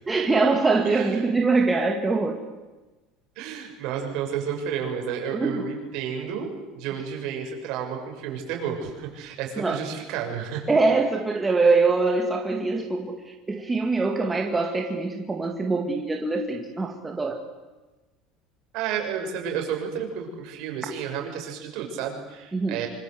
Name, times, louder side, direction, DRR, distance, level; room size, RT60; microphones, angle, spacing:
voice 1, 0.1-2.4 5.3-5.7 9.6-9.8 10.7-17.4 22.5-22.8, right 3 dB, 10° right, 2 dB, 2.2 m, -23 dB
voice 2, 0.8-1.3 3.4-10.7 18.7-22.9, right 7 dB, 60° right, 2 dB, 6.6 m, -31 dB
26.0 x 25.5 x 8.1 m, 1.2 s
cardioid pair, 155°, 0 cm